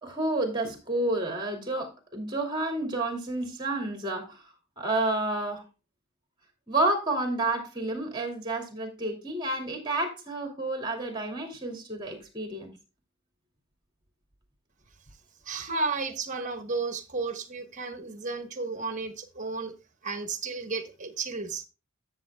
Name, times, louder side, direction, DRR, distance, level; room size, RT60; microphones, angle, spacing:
voice 1, 0.0-4.4 4.8-5.6 6.7-12.7, right 2 dB, 20° right, 2.4 m, -30 dB
voice 2, 15.4-19.7 20.0-21.6, right 4 dB, 35° right, 1.2 m, -33 dB
13.5 x 7.4 x 2.2 m
head